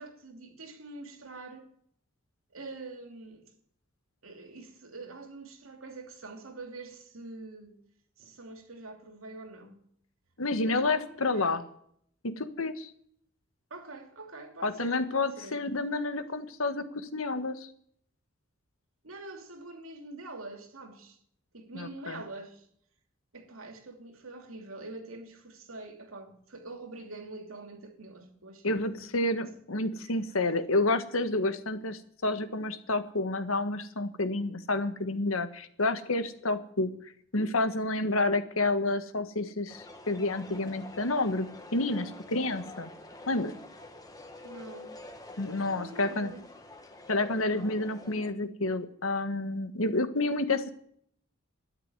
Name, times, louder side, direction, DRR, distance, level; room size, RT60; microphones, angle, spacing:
voice 1, 0.0-1.7 2.5-3.5 4.2-7.8 8.2-9.8 10.5-11.6 13.7-15.6 19.0-21.2 21.5-22.7 23.3-29.1 29.3-29.5 30.0-30.1 30.4-30.5 44.4-45.0 45.4-46.4, right 2 dB, 90° right, 2.8 m, -45 dB
voice 2, 10.4-11.6 12.2-12.9 14.6-17.7 21.7-22.2 28.6-36.9 37.3-42.9 43.3-43.5 45.4-46.3 47.1-50.7, left 2 dB, 90° left, 1.6 m, -29 dB
sound 1, 39.7-48.3, left 2 dB, 20° left, 1.7 m, -47 dB
13.0 x 10.5 x 9.8 m
head